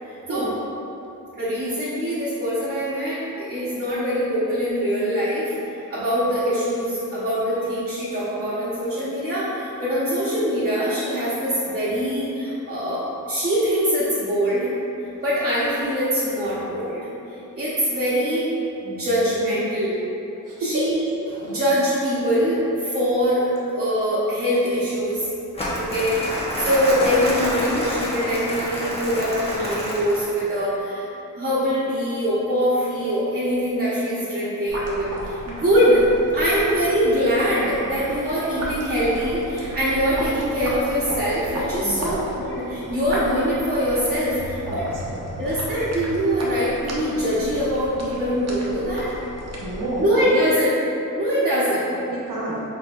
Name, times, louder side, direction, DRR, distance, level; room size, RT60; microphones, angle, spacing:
voice 1, 1.4-5.5 5.9-14.7 15.2-17.1 17.5-18.5 18.8-20.0 20.6-21.0 21.3-25.3 25.8-26.2 26.6-31.1 31.4-44.9 45.4-49.1 50.0-50.7 51.1-52.0, equal, 30° right, -11 dB, 1.1 m, -23 dB
Crumpling crinkling, 25.5-30.4, equal, 20° left, 1.0 m, -28 dB
sound 1, 34.7-50.0, equal, 50° right, 0.9 m, -34 dB
voice 2, 41.8-42.2 44.7-45.4 49.6-50.4 52.0-52.6, right 1 dB, 75° right, -5 dB, 1.1 m, -30 dB
4.5 x 4.1 x 2.5 m, 2.9 s
cardioid pair, 100°, 32 cm